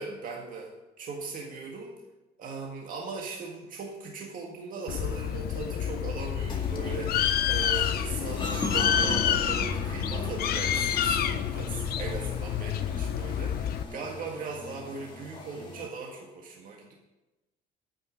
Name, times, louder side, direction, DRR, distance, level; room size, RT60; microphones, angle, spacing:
voice 1, 0.0-1.9 2.4-16.9, right 4 dB, 55° right, 0 dB, 1.8 m, -39 dB
Bird, 4.9-13.8, left 9 dB, 65° left, 0.7 m, -28 dB
sound 1, 6.5-15.9, left 2 dB, 30° left, 2.0 m, -38 dB
9.3 x 5.7 x 8.3 m, 1.0 s
cardioid pair, 110°, 17 cm